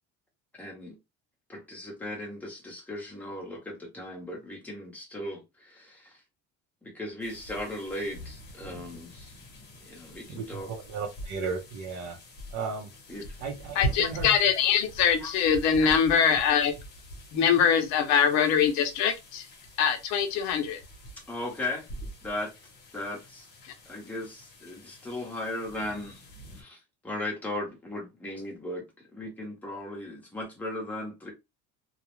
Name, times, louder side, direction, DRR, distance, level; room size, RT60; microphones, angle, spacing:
voice 1, 0.6-1.0 1.5-6.2 6.8-9.4 9.9-10.7 13.1-13.2 15.2-15.3 15.8-15.9 21.3-21.9 22.2-22.5 22.9-23.5 23.8-26.2 26.5-26.8 27.0-28.9 29.1-31.3, left 1 dB, 5° left, 0.7 m, -37 dB
sound 1, 7.2-26.6, equal, 35° left, 0.8 m, -43 dB
voice 2, 10.3-12.2 12.5-12.9 13.4-14.3, right 5 dB, 60° right, 0.6 m, -35 dB
voice 3, 13.8-16.7 17.3-19.5 19.8-20.8 23.6-23.7, left 7 dB, 65° left, 0.6 m, -23 dB
2.4 x 2.1 x 2.9 m
cardioid pair, 175°, 30 cm